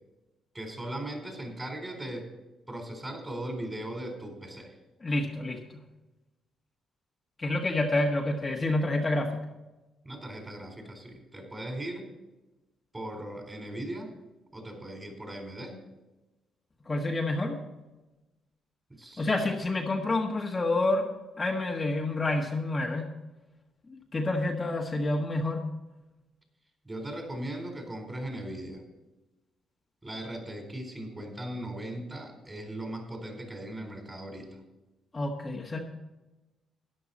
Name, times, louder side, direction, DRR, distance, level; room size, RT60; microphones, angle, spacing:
voice 1, 0.5-2.3 2.7-4.7 10.0-12.1 12.9-14.1 14.5-15.8 18.9-19.3 26.8-28.8 30.0-34.6, right 1 dB, 20° right, 3 dB, 4.0 m, -38 dB
voice 2, 5.0-5.8 7.4-9.4 16.8-17.6 19.2-23.1 23.9-25.7 35.1-35.8, left 2 dB, 25° left, 0 dB, 1.5 m, -28 dB
13.5 x 10.5 x 4.2 m, 1.1 s
cardioid pair, 90°, 0 cm